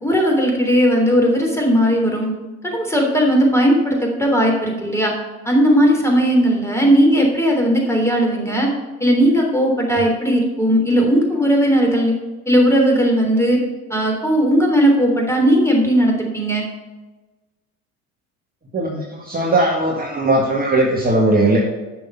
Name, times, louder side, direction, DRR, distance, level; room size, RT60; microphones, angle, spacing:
voice 1, 0.0-2.3 2.7-5.1 5.4-8.7 9.0-12.1 12.5-13.6 13.9-16.6, equal, 5° left, 0 dB, 3.3 m, -17 dB
voice 2, 18.7-21.6, right 2 dB, 20° right, -2 dB, 1.7 m, -18 dB
10.5 x 6.3 x 5.6 m, 1.2 s
figure-of-eight pair, 65°, 44 cm